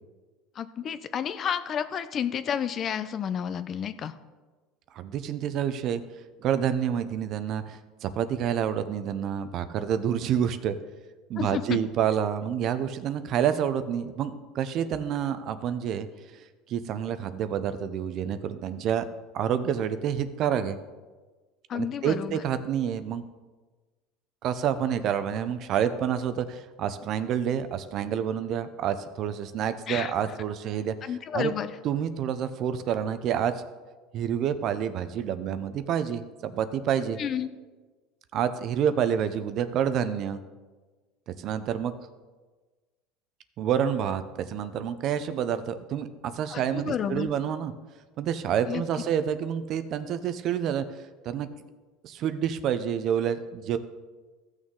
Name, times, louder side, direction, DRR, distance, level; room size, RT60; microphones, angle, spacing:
voice 1, 0.6-4.1 11.4-11.8 21.7-22.4 29.9-30.1 31.0-31.7 37.2-37.5 46.5-47.3 48.7-48.8, left 8 dB, 35° left, 13 dB, 0.5 m, -31 dB
voice 2, 4.9-6.0 6.4-10.8 11.3-16.1 16.7-19.1 19.3-20.8 21.7-23.3 24.4-31.5 31.8-33.6 34.1-37.2 38.3-40.4 41.3-41.9 43.6-47.7 48.2-50.8 51.2-51.5 52.0-53.8, right 9 dB, 50° right, 12 dB, 0.6 m, -28 dB
14.5 x 6.3 x 3.7 m, 1.3 s
supercardioid pair, 125°, 0 cm